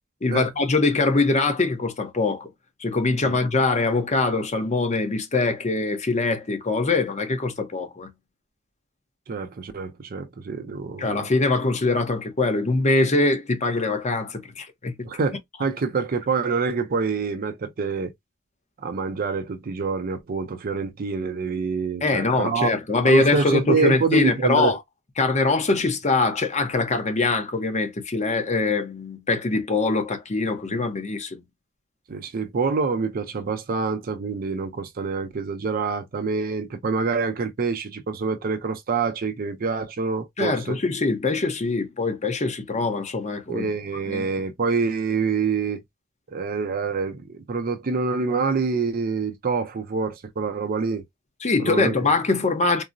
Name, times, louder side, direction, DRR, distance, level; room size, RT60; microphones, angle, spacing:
voice 1, 0.2-2.5 2.8-8.1 11.0-15.1 22.0-24.8 25.2-31.4 40.4-43.7 44.1-44.3 51.4-52.8, left 3 dB, 35° left, 0.7 m, -23 dB
voice 2, 9.3-11.3 15.0-18.1 18.8-22.7 23.0-24.8 32.1-40.8 43.5-45.8 46.3-51.0 51.6-51.9, right 4 dB, 45° right, 0.5 m, -26 dB
3.7 x 2.0 x 2.5 m
head